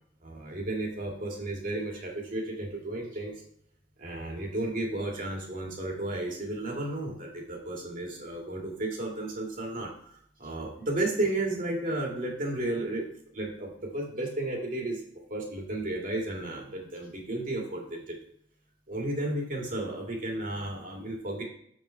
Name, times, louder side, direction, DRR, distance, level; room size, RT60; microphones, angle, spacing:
voice 1, 0.2-3.3 4.0-9.9 10.4-15.0 15.3-18.2 18.9-21.4, right 2 dB, 45° right, -1 dB, 2.2 m, -33 dB
7.3 x 5.6 x 4.4 m, 0.67 s
head